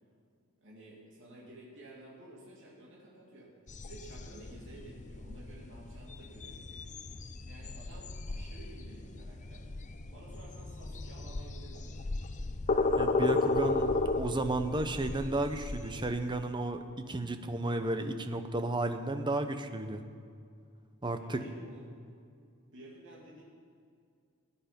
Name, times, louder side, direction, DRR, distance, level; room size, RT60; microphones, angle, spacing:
voice 1, 0.6-3.5 3.8-6.9 7.5-9.7 10.1-12.0 13.8-14.0 21.1-22.0 22.7-23.4, right 1 dB, 60° right, -5 dB, 2.7 m, -52 dB
sound 1, 3.7-16.1, left 2 dB, 35° left, 0.6 m, -34 dB
voice 2, 13.0-20.0 21.0-21.4, right 2 dB, 20° right, 8 dB, 0.7 m, -33 dB
17.5 x 10.0 x 5.2 m, 2.3 s
head